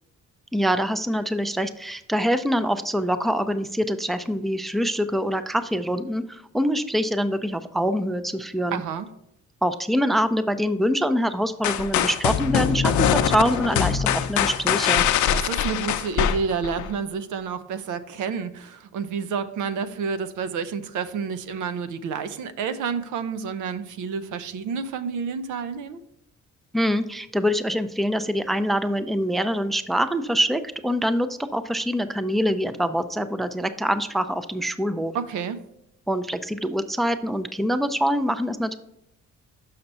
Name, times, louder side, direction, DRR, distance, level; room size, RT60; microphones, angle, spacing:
voice 1, 0.5-8.8 9.6-15.1 26.7-35.1 36.1-38.8, equal, ahead, 12 dB, 0.4 m, -24 dB
voice 2, 8.7-9.1 15.3-26.0 35.1-35.6, right 5 dB, 80° right, 12 dB, 0.7 m, -29 dB
sound 1, 11.6-16.9, left 9 dB, 70° left, 0.6 m, -23 dB
6.5 x 5.8 x 4.2 m, 0.81 s
cardioid pair, 90°, 30 cm